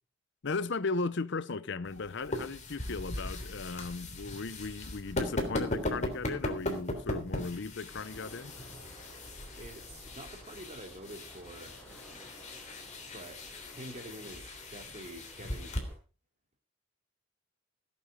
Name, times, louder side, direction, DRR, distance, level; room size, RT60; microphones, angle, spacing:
voice 1, 0.4-8.5, left 4 dB, 65° left, 0.7 m, -36 dB
sound 1, 1.9-15.8, left 1 dB, 40° left, 3.3 m, -38 dB
sound 2, 7.9-16.0, right 1 dB, 5° left, 7.4 m, -55 dB
voice 2, 9.6-11.8 13.1-15.8, right 1 dB, 35° right, 3.2 m, -47 dB
16.5 x 8.6 x 5.2 m
head